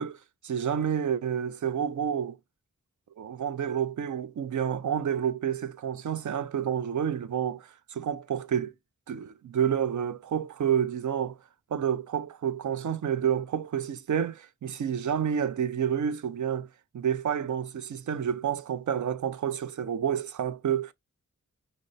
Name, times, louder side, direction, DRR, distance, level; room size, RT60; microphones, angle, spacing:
voice 1, 0.0-2.4 3.2-8.7 9.1-11.4 11.7-16.7 16.9-20.9, right 8 dB, 70° right, 0.5 m, -29 dB
5.1 x 2.0 x 3.9 m
cardioid pair, 40°, 31 cm